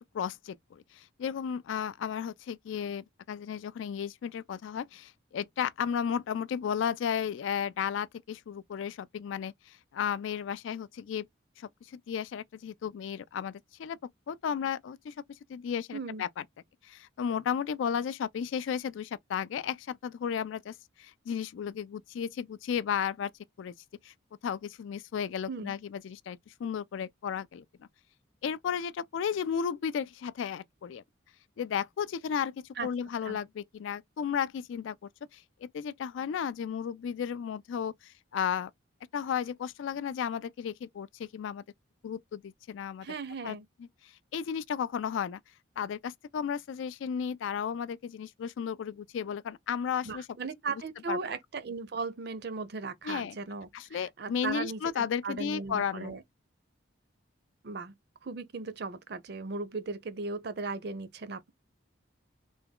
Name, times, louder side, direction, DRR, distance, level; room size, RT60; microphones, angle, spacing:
voice 1, 0.1-11.3 11.6-14.0 14.3-15.1 15.5-16.4 16.8-23.3 23.6-23.7 24.0-24.1 24.4-27.9 28.4-31.0 31.6-35.0 35.3-38.7 39.1-41.6 42.0-43.1 43.4-43.9 44.3-45.4 45.8-50.3 51.1-51.2 53.0-53.4 53.7-56.2, left 7 dB, 75° left, 0.3 m, -34 dB
voice 2, 15.9-16.2 25.5-25.7 32.8-32.9 33.2-33.4 43.0-43.7 50.0-56.2 57.6-57.9 58.2-61.5, right 4 dB, 55° right, 0.5 m, -37 dB
3.4 x 2.2 x 3.5 m
head